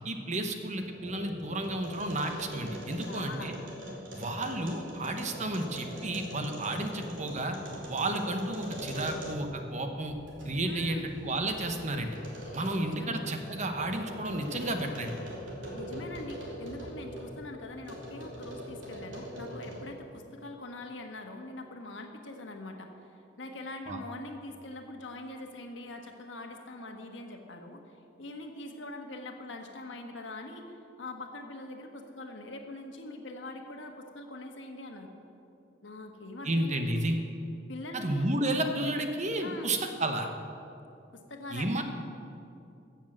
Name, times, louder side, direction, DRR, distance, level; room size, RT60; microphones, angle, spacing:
voice 1, 0.0-3.5 4.1-7.6 7.9-10.1 10.4-12.2 12.5-15.1 23.9-24.0 36.4-37.2 37.9-40.3 41.5-41.8, right 1 dB, 40° right, 5 dB, 1.1 m, -32 dB
sound 1, 0.8-9.6 10.1-17.4 17.8-20.0, equal, 85° right, 3.3 m, -43 dB
voice 2, 3.0-3.5 10.7-11.1 12.6-13.3 15.7-27.8 28.2-35.1 35.8-37.0 37.7-38.3 39.4-39.7 41.1-41.8, left 2 dB, 75° left, 4 dB, 1.5 m, -43 dB
15.0 x 7.2 x 7.4 m, 2.6 s
head